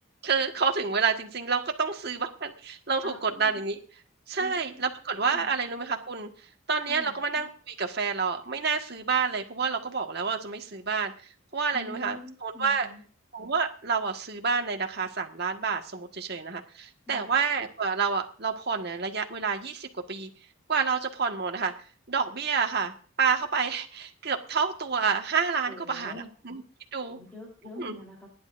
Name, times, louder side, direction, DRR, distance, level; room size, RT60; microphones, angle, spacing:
voice 1, 0.2-3.8 4.3-6.3 6.7-11.1 11.5-12.9 13.3-20.3 20.7-21.7 22.1-26.6 26.9-27.2 27.8-28.0, right 5 dB, 50° right, 3 dB, 1.6 m, -29 dB
voice 2, 3.0-3.6 4.4-5.5 6.9-7.1 11.7-13.0 17.1-17.4 25.7-26.3 27.1-28.3, left 1 dB, 10° left, -3 dB, 3.7 m, -45 dB
28.5 x 11.0 x 2.6 m, 0.40 s
head